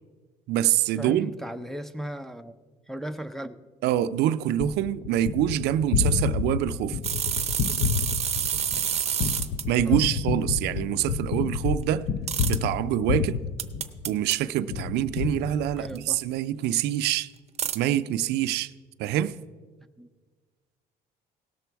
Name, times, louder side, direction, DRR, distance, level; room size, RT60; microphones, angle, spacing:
voice 1, 0.5-1.3 3.8-7.0 9.7-12.1 12.5-13.4 14.1-17.3 17.7-18.7 19.0-19.3, right 12 dB, 80° right, 0.4 m, -25 dB
voice 2, 1.0-2.5 2.9-3.6 9.8-10.0 15.8-16.2 20.0-20.1, equal, ahead, 0.5 m, -36 dB
Gunshot gunfire, 4.6-14.3 14.7-16.1, left 6 dB, 65° left, 0.5 m, -29 dB
sound 1, 7.0-9.6 12.3-12.6 13.6-14.4 16.0-16.1 17.6-17.8, right 9 dB, 40° right, 0.7 m, -28 dB
17.5 x 6.9 x 4.6 m
cardioid pair, 110°, 17 cm